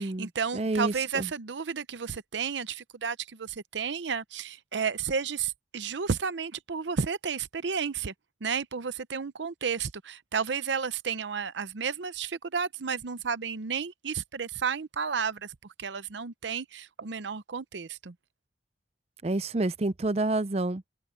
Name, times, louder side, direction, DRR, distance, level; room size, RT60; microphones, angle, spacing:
voice 1, 0.0-8.1 8.4-18.1, right 6 dB, 80° right, 0.7 m, -32 dB
voice 2, 0.5-1.3 19.2-20.8, right 2 dB, 35° right, 0.5 m, -28 dB
open air
head